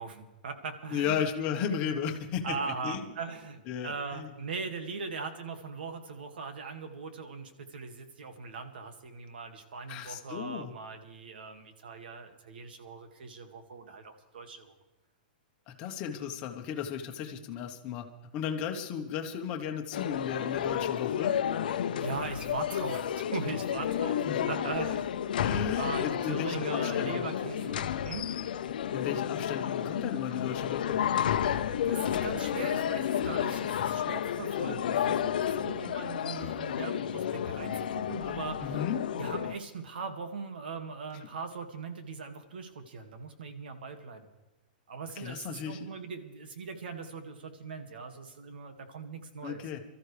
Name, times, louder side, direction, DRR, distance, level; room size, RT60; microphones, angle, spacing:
voice 1, 0.0-1.3 2.4-14.7 22.0-24.2 24.5-25.2 25.8-28.3 31.4-38.8 39.2-44.3 44.9-49.6, right 5 dB, 85° right, 6 dB, 2.1 m, -40 dB
voice 2, 0.9-2.6 2.8-3.0 3.7-4.3 9.9-10.7 15.7-18.1 18.3-21.3 24.3-24.5 25.4-27.3 28.9-31.0 38.6-39.0 45.2-45.9 49.4-49.8, left 8 dB, 25° left, 3 dB, 1.1 m, -34 dB
sound 1, 19.9-39.5, left 9 dB, 65° left, 0.8 m, -31 dB
24.0 x 13.5 x 3.4 m, 1.0 s
supercardioid pair, 180°, 5 cm